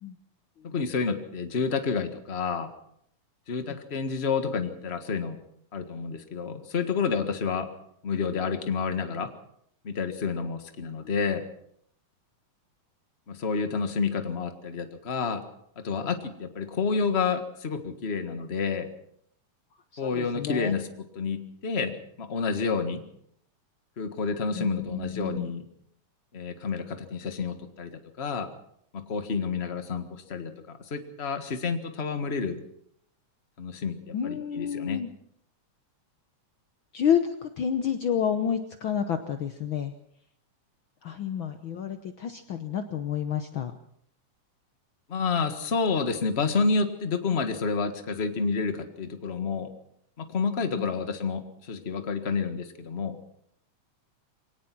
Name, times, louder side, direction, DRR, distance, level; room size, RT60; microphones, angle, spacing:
voice 1, 0.6-2.7 3.5-5.4 5.7-7.7 8.0-9.3 9.8-11.4 13.3-15.4 15.7-18.9 20.0-20.9 21.1-23.0 24.0-25.6 26.3-27.9 28.2-28.5 28.9-32.6 33.6-35.0 45.1-49.7 50.2-53.2, left 5 dB, 35° left, 8 dB, 1.1 m, -29 dB
voice 2, 19.9-20.7 24.5-25.5 34.1-35.1 36.9-39.9 41.0-43.7 50.8-50.9, left 8 dB, 80° left, 8 dB, 1.1 m, -29 dB
23.0 x 18.5 x 6.1 m, 0.69 s
omnidirectional pair, 3.7 m